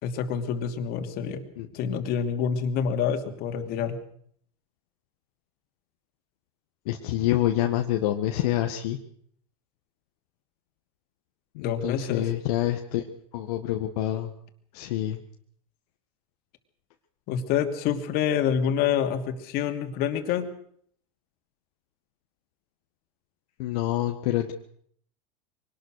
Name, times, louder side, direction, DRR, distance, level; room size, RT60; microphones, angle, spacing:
voice 1, 0.0-1.4 1.7-4.0 11.6-12.3 17.3-20.5, left 8 dB, 50° left, 7 dB, 2.8 m, -27 dB
voice 2, 6.8-9.0 11.5-13.0 13.3-14.3 14.7-15.2 23.6-24.5, left 13 dB, 70° left, 4 dB, 1.7 m, -27 dB
24.0 x 19.0 x 6.5 m, 0.63 s
supercardioid pair, 110°, 20 cm